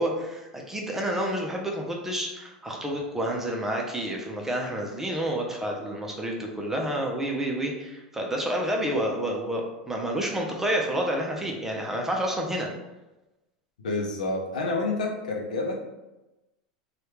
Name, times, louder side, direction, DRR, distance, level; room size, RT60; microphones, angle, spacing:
voice 1, 0.0-12.7, right 1 dB, 10° right, 0 dB, 0.7 m, -29 dB
voice 2, 13.8-15.7, left 3 dB, 85° left, 0 dB, 0.6 m, -28 dB
3.1 x 2.4 x 3.0 m, 1.0 s
hypercardioid pair, 95°, 4 cm